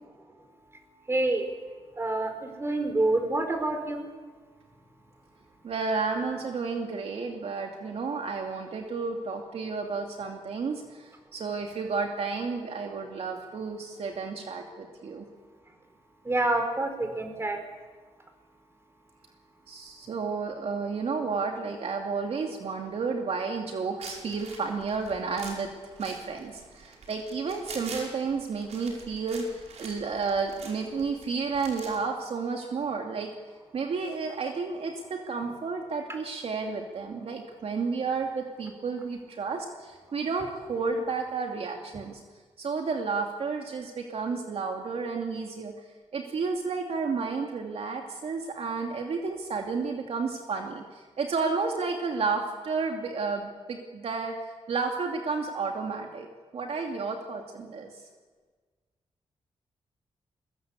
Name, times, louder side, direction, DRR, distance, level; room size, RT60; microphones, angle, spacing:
voice 1, 1.1-1.5 2.0-4.1 16.2-17.6, right 2 dB, 25° right, 6 dB, 4.6 m, -27 dB
voice 2, 5.6-15.3 19.7-25.7 26.0-33.3 33.7-42.2 42.6-45.7 46.1-54.3 54.7-57.9, right 4 dB, 65° right, 3 dB, 2.6 m, -31 dB
sound 1, 24.0-32.0, right 4 dB, 85° right, 5.5 m, -45 dB
23.0 x 21.0 x 8.4 m, 1.4 s
wide cardioid pair, 115°, 11 cm